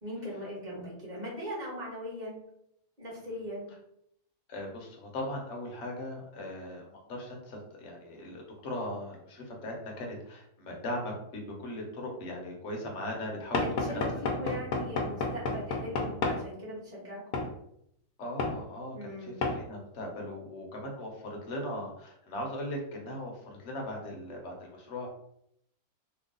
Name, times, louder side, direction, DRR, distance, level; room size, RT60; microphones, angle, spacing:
voice 1, 0.0-2.4 3.0-3.6 13.6-17.2 18.9-19.4, equal, 30° right, -5 dB, 1.3 m, -39 dB
voice 2, 4.5-14.1 14.4-14.5 18.2-25.1, left 1 dB, 55° left, 0 dB, 1.1 m, -39 dB
Knock / Wood, 13.5-16.4 17.3-17.5 18.4-18.6 19.4-19.6, left 3 dB, 90° left, 1.2 m, -30 dB
3.0 x 2.3 x 3.7 m, 0.74 s
omnidirectional pair, 1.5 m